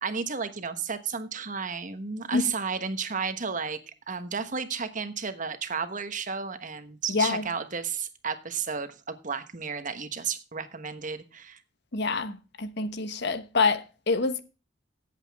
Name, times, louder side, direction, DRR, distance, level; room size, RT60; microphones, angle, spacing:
voice 1, 0.0-3.8 4.1-11.6, right 5 dB, 45° right, 1.2 m, -33 dB
voice 2, 7.1-7.4 11.9-14.4, left 4 dB, 60° left, 1.1 m, -26 dB
15.5 x 8.3 x 3.5 m
head